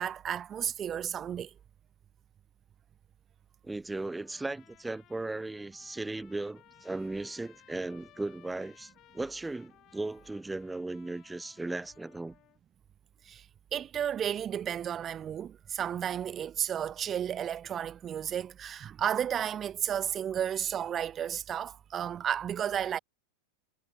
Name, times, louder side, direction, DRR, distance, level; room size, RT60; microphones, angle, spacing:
voice 1, 0.0-1.5 13.3-13.4 13.7-23.0, right 9 dB, 25° right, 1.3 m, -33 dB
voice 2, 3.6-12.3, right 2 dB, 5° right, 2.1 m, -37 dB
Trumpet, 4.0-12.6, left 15 dB, 35° left, 7.6 m, -61 dB
figure-of-eight pair, 90°, 0 cm